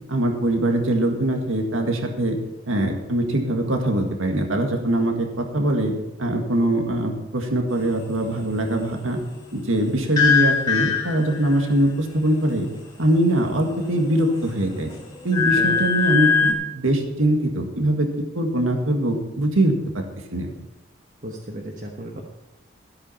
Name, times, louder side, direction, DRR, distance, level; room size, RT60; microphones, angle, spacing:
voice 1, 0.1-2.4 2.7-5.9 6.2-9.2 9.5-12.7 13.0-14.9 15.2-18.1 18.3-20.0 20.3-20.5, right 1 dB, 85° right, 3 dB, 1.9 m, -22 dB
sound 1, 10.2-11.7 13.6-14.3 14.7-16.5, left 6 dB, 20° left, 2.3 m, -21 dB
voice 2, 21.2-22.2, right 1 dB, 40° right, -1 dB, 1.2 m, -35 dB
13.5 x 8.3 x 5.7 m, 1.0 s
head